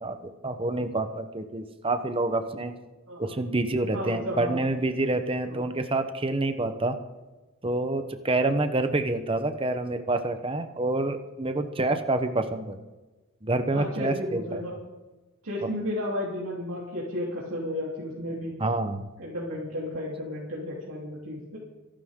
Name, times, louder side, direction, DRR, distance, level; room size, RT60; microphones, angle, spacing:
voice 1, 0.4-2.7 3.2-7.0 7.6-12.8 13.4-14.6 18.6-19.1, right 2 dB, 25° right, 8 dB, 1.0 m, -27 dB
voice 2, 3.9-4.6 5.5-5.7 13.7-14.7 15.4-18.5 19.2-21.6, left 1 dB, 75° right, -6 dB, 3.4 m, -33 dB
26.0 x 12.0 x 3.8 m, 1.2 s
head